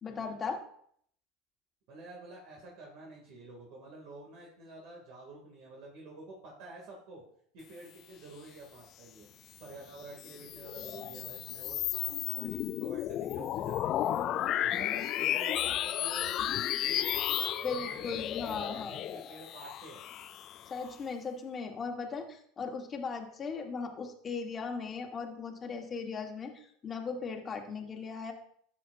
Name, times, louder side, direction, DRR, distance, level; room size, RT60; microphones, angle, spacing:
voice 1, 0.0-0.6 17.6-19.0 20.7-26.5 26.8-28.3, left 5 dB, 30° left, 2 dB, 1.5 m, -37 dB
voice 2, 1.9-7.2 7.5-9.3 9.6-14.3 14.8-20.0 27.6-27.8, right 2 dB, 65° right, -1 dB, 2.5 m, -49 dB
sound 1, 10.0-20.9, left 12 dB, 45° left, 0.4 m, -33 dB
12.5 x 7.6 x 2.7 m, 0.64 s
supercardioid pair, 110°, 0 cm